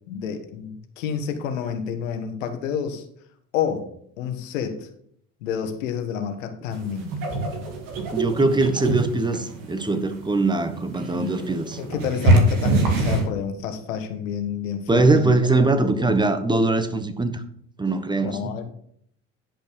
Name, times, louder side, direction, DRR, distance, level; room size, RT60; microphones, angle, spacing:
voice 1, 0.1-3.0 3.5-3.9 4.2-4.9 5.4-7.1 11.1-11.4 11.8-16.3 18.2-18.7, left 7 dB, 90° left, 7 dB, 1.4 m, -29 dB
sound 1, 6.7-13.3, right 1 dB, 60° right, 2.2 m, -24 dB
voice 2, 8.1-11.8 14.9-17.4 17.8-18.5, right 3 dB, 10° right, 10 dB, 1.3 m, -22 dB
10.5 x 5.3 x 5.2 m, 0.66 s
hypercardioid pair, 80°, 37 cm